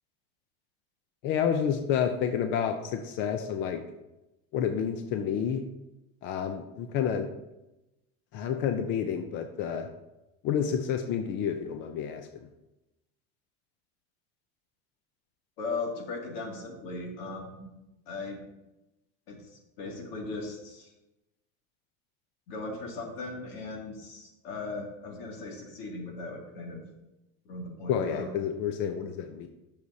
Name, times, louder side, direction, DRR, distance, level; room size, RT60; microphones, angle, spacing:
voice 1, 1.2-3.8 4.5-5.7 6.2-7.3 8.3-9.9 10.4-12.5 27.9-29.5, left 8 dB, 40° left, 6 dB, 0.5 m, -29 dB
voice 2, 15.6-17.7 18.1-18.4 19.3-20.9 22.5-26.8 27.4-28.3, left 3 dB, 80° left, 0 dB, 2.3 m, -38 dB
11.0 x 6.6 x 2.7 m, 0.96 s
cardioid pair, 170°, 30 cm